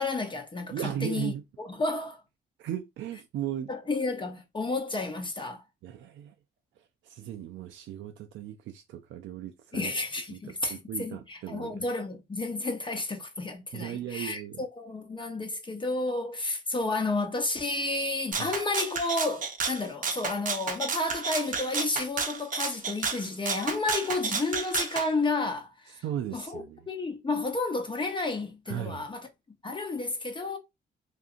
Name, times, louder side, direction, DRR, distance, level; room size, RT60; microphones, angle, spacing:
voice 1, 0.0-1.3 1.6-2.2 3.7-5.6 9.7-26.0 26.3-29.3 29.6-30.6, left 2 dB, 25° left, 0.6 m, -31 dB
voice 2, 0.7-1.4 2.6-3.7 5.8-6.3 7.0-9.9 10.3-10.4 10.7-11.9 13.7-14.6 18.4-18.5 26.0-26.8 28.7-29.1, right 10 dB, 75° right, 0.4 m, -36 dB
Rattle (instrument), 18.3-25.1, right 5 dB, 40° right, 0.7 m, -32 dB
2.7 x 2.5 x 2.4 m
cardioid pair, 90°, 20 cm